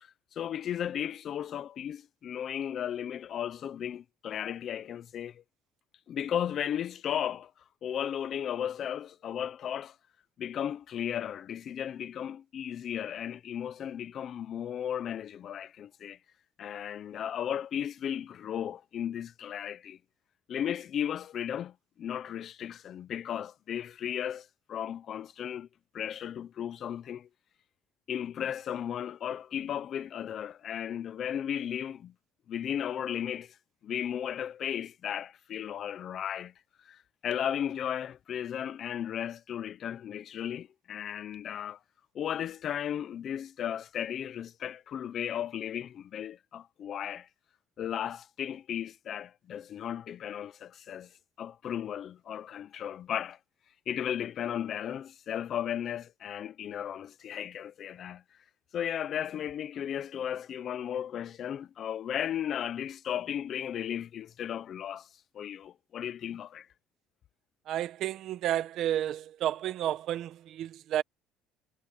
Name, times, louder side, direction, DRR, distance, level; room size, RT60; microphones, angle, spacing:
voice 1, 0.0-5.4 6.1-7.5 7.8-10.0 10.4-16.2 16.6-20.0 20.5-25.7 25.9-27.3 28.1-32.1 32.5-33.6 33.8-36.5 36.8-41.8 42.1-47.3 47.8-51.1 51.4-53.4 53.9-58.2 58.7-65.1 65.3-66.7, left 9 dB, 35° left, 0.6 m, -35 dB
voice 2, 67.7-71.0, right 12 dB, 50° right, 1.0 m, -31 dB
cardioid pair, 175°, 0 cm